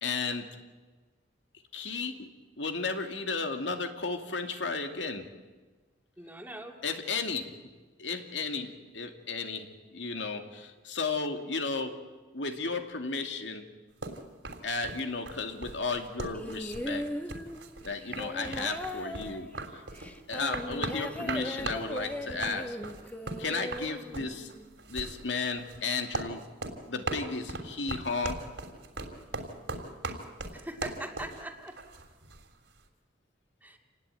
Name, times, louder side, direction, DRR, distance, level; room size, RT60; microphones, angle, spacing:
voice 1, 0.0-0.6 1.7-2.3 2.6-5.3 6.8-7.7 8.0-12.0 12.3-13.7 14.6-17.1 17.8-19.8 20.3-22.8 23.4-24.5 24.9-26.5 26.9-28.5, left 4 dB, 80° left, 5 dB, 2.4 m, -34 dB
voice 2, 6.2-6.8 30.5-31.8 33.6-33.8, right 1 dB, 10° right, 3 dB, 2.4 m, -41 dB
sound 1, 14.0-32.5, right 3 dB, 70° right, 3.4 m, -39 dB
sound 2, 16.3-24.7 25.7-25.8, left 1 dB, 10° left, 1.6 m, -39 dB
28.0 x 19.0 x 9.0 m, 1.3 s
head